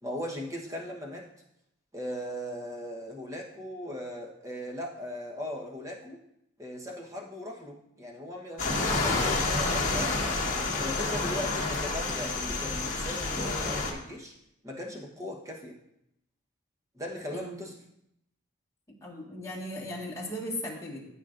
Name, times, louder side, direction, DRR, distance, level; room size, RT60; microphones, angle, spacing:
voice 1, 0.0-1.3 1.9-6.2 6.6-10.3 10.8-14.4 14.6-15.8 16.9-17.7, left 1 dB, 15° right, 0 dB, 1.0 m, -38 dB
sound 1, 8.6-13.9, left 3 dB, 35° left, 1.4 m, -29 dB
voice 2, 19.0-21.1, left 1 dB, 15° left, -4 dB, 1.6 m, -37 dB
13.5 x 6.1 x 2.5 m, 0.80 s
head